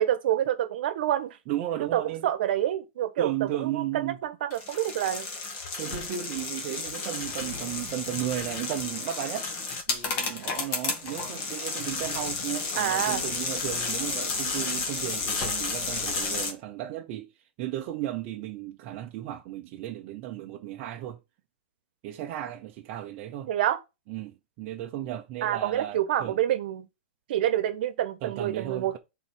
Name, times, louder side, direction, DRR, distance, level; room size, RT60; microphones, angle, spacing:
voice 1, 0.0-1.4 1.9-3.3 3.6-5.3 12.7-13.2 23.5-23.8 25.4-26.9 27.3-29.0, right 11 dB, 50° right, 1.2 m, -27 dB
voice 2, 1.5-2.3 3.2-4.2 5.8-9.5 9.9-17.3 17.6-21.2 22.0-23.5 24.1-26.4 28.2-29.0, right 12 dB, 30° right, 0.8 m, -34 dB
sound 1, 4.5-16.5, left 4 dB, 25° left, 1.7 m, -32 dB
7.2 x 4.5 x 5.7 m
supercardioid pair, 170°, 7 cm